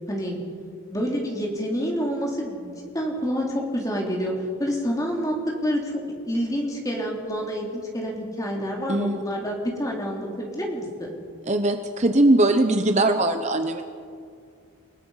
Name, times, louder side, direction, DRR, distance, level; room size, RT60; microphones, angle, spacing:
voice 1, 0.1-0.4 0.9-5.4 5.6-11.2, equal, 15° left, -1 dB, 3.3 m, -28 dB
voice 2, 8.9-9.2 11.5-13.8, right 1 dB, 30° right, 7 dB, 0.8 m, -20 dB
29.0 x 17.5 x 5.7 m, 2.3 s
head